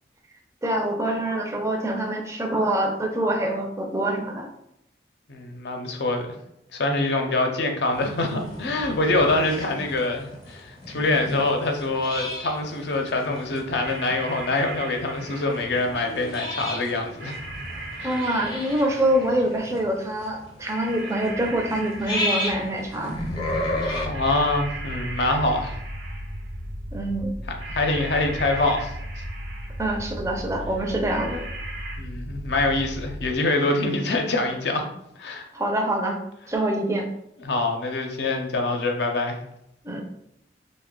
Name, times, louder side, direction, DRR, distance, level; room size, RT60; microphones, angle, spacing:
voice 1, 0.6-4.5 18.0-23.2 26.9-27.3 29.8-31.4 35.5-36.2 36.5-37.1 39.8-40.1, right 1 dB, 15° right, 2 dB, 0.4 m, -25 dB
voice 2, 5.3-6.3 6.7-17.3 18.0-18.1 24.1-25.8 27.7-28.9 32.0-34.9 35.2-35.5 37.4-39.4, left 2 dB, 65° left, 3 dB, 0.5 m, -25 dB
sound 1, 7.9-24.1, left 1 dB, 25° left, 0.6 m, -34 dB
sound 2, 12.7-12.8 13.7-16.1 17.2-19.6 20.6-23.1 24.1-26.5 27.6-30.0 31.0-32.0, right 2 dB, 90° right, 0.9 m, -39 dB
sound 3, 23.1-33.3, equal, 65° right, 0.6 m, -35 dB
3.0 x 2.1 x 3.6 m, 0.77 s
head